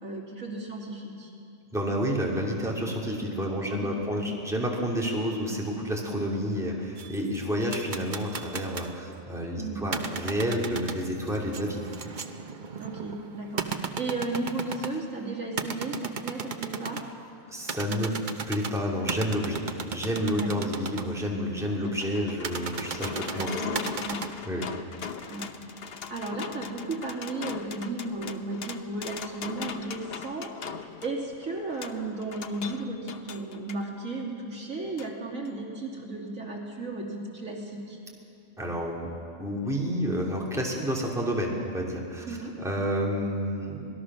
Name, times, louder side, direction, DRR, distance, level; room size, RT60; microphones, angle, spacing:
voice 1, 0.0-1.3 3.7-4.2 9.6-9.9 12.8-17.1 20.4-20.6 21.8-22.0 23.2-24.3 25.3-38.0 42.2-42.6, right 2 dB, 70° right, -2 dB, 3.2 m, -35 dB
voice 2, 1.7-11.8 17.5-18.1 18.5-23.6 24.5-24.7 38.6-39.1 39.4-43.9, equal, ahead, -3 dB, 2.7 m, -30 dB
sound 1, 7.0-9.0 9.9-15.1 15.6-17.1 17.6-21.0 22.4-24.3, right 5 dB, 40° right, 0.9 m, -35 dB
sound 2, 21.3-33.8 35.0-35.1 35.5-35.6, left 6 dB, 50° left, 1.0 m, -40 dB
26.0 x 19.0 x 6.2 m, 2.7 s
omnidirectional pair, 1.4 m